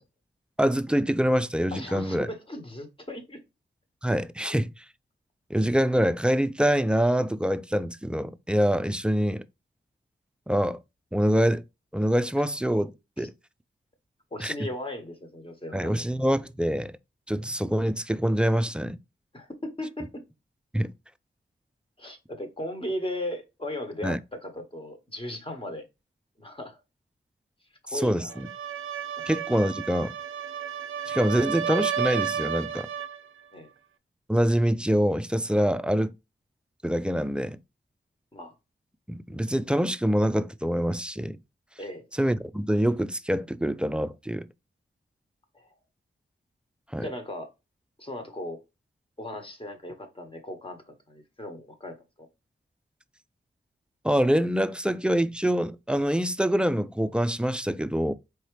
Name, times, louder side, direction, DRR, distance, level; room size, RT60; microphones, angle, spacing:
voice 1, 0.6-2.3 4.0-4.8 5.5-9.4 10.5-10.8 11.1-11.6 11.9-13.3 14.4-14.5 15.7-16.9 17.3-19.0 20.7-20.9 24.0-24.2 27.9-28.5 29.3-30.1 31.1-32.9 34.3-36.1 36.8-37.6 39.1-41.4 42.2-44.5 46.9-47.1 54.0-58.1, equal, 5° right, 0.3 m, -25 dB
voice 2, 1.7-3.4 13.2-13.3 14.3-15.9 19.3-20.2 22.0-25.8 26.4-26.8 27.8-28.4 33.5-33.7 38.3-38.5 41.8-42.0 45.5-45.7 47.0-47.5 48.0-48.6 49.2-51.9, left 1 dB, 25° left, 1.4 m, -37 dB
Violin single note swell, 28.3-33.2, right 8 dB, 80° right, 0.4 m, -32 dB
4.7 x 2.9 x 3.1 m
cardioid pair, 55°, 20 cm